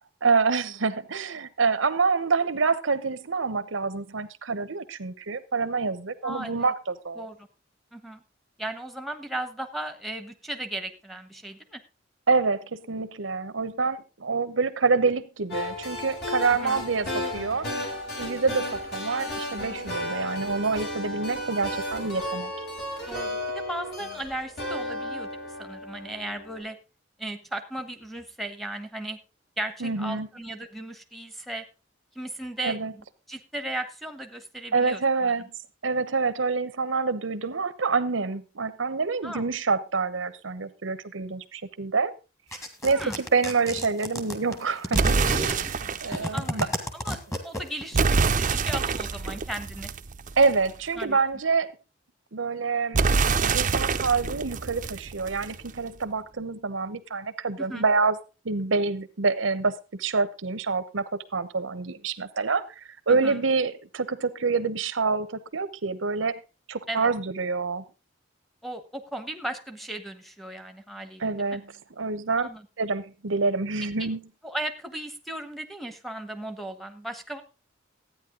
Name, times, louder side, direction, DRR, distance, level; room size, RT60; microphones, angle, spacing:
voice 1, 0.2-7.3 12.3-17.7 18.2-22.5 29.8-30.3 32.6-32.9 34.7-35.5 35.8-42.1 42.8-45.5 46.0-46.7 50.4-51.7 52.3-53.0 53.4-58.2 58.4-62.6 63.1-66.4 66.7-67.8 71.2-71.7 72.0-72.5 72.8-74.2, right 4 dB, 85° right, 1.0 m, -26 dB
voice 2, 6.2-6.7 7.2-7.5 7.9-8.2 8.6-11.8 16.6-16.8 23.1-26.8 27.2-29.2 29.6-31.6 32.1-35.5 39.2-39.5 42.9-43.2 45.3-45.6 46.3-46.6 46.9-49.9 51.0-51.2 57.6-57.8 63.1-63.4 66.9-67.1 68.6-71.6 72.4-72.7 74.0-74.1 74.4-77.4, right 1 dB, ahead, 1.2 m, -36 dB
sound 1, 15.5-26.6, left 1 dB, 60° left, 5.5 m, -34 dB
sound 2, 42.5-48.0, equal, 15° left, 1.9 m, -32 dB
sound 3, 44.9-46.2 47.9-50.7 52.9-55.7, right 4 dB, 45° right, 0.6 m, -25 dB
13.5 x 9.4 x 3.8 m
head